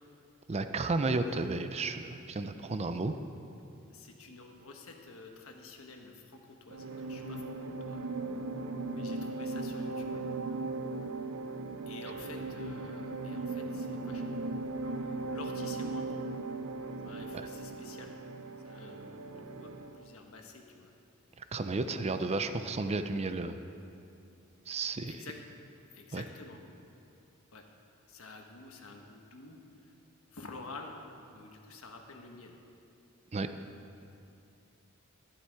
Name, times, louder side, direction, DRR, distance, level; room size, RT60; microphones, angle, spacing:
voice 1, 0.5-3.1 17.3-17.4 21.5-23.6 24.7-25.3 26.1-26.2 33.3-33.5, right 3 dB, 30° right, 9 dB, 0.5 m, -32 dB
voice 2, 3.9-8.0 8.9-10.2 11.9-14.5 15.0-16.2 17.0-18.2 18.6-20.9 25.1-25.3 25.9-26.6 27.5-27.6 28.1-29.6 29.8-29.9 30.3-30.9 31.3-32.6, left 3 dB, 70° left, 3 dB, 1.3 m, -49 dB
sound 1, 6.7-20.0, right 3 dB, 85° right, 0.8 m, -38 dB
11.5 x 11.5 x 4.7 m, 2.7 s
head